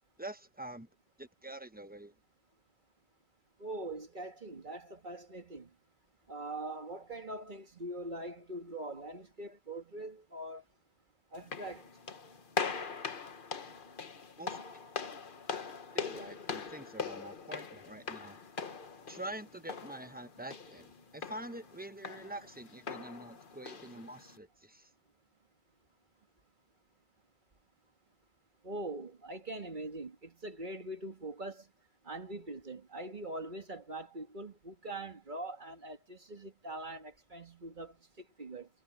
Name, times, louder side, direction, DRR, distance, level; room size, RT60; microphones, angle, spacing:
voice 1, 0.2-0.9 1.2-2.1 14.4-14.6 15.9-18.4 19.1-24.9, right 1 dB, 10° right, 0.8 m, -46 dB
voice 2, 3.6-5.7 6.3-10.6 11.3-11.9 28.6-31.7 32.0-38.7, right 2 dB, 40° right, 2.0 m, -43 dB
sound 1, 11.3-24.4, left 5 dB, 45° left, 1.3 m, -42 dB
omnidirectional pair, 1.2 m